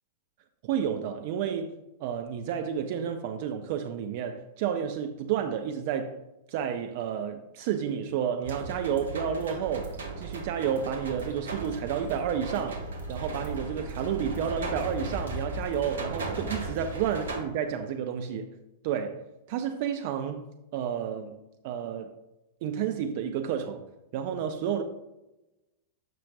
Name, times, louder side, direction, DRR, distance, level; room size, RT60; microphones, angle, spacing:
voice 1, 0.6-1.7 2.0-6.2 6.5-12.8 13.1-18.5 18.8-22.2 22.6-23.9 24.1-24.8, right 8 dB, 50° right, 0.5 m, -31 dB
sound 1, 8.4-17.4, right 3 dB, 65° right, 1.1 m, -37 dB
sound 2, 11.8-17.7, right 1 dB, 35° right, 1.7 m, -43 dB
7.5 x 5.7 x 2.7 m
figure-of-eight pair, 95°, 0 cm